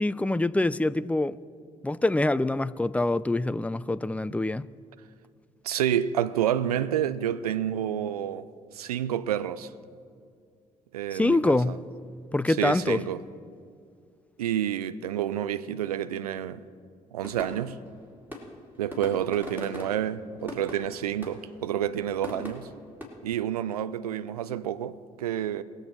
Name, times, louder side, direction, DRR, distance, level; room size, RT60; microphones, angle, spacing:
voice 1, 0.0-1.4 1.8-4.7 11.1-11.8 12.3-13.0, left 2 dB, 5° left, 0.5 m, -25 dB
voice 2, 5.6-8.5 8.7-9.7 10.9-11.8 12.5-13.2 14.4-16.6 17.1-17.8 18.8-22.7 23.2-25.6, right 10 dB, 85° right, 0.5 m, -29 dB
sound 1, 17.2-23.1, left 1 dB, 10° right, 3.9 m, -41 dB
22.5 x 7.7 x 4.6 m
figure-of-eight pair, 45°, 19 cm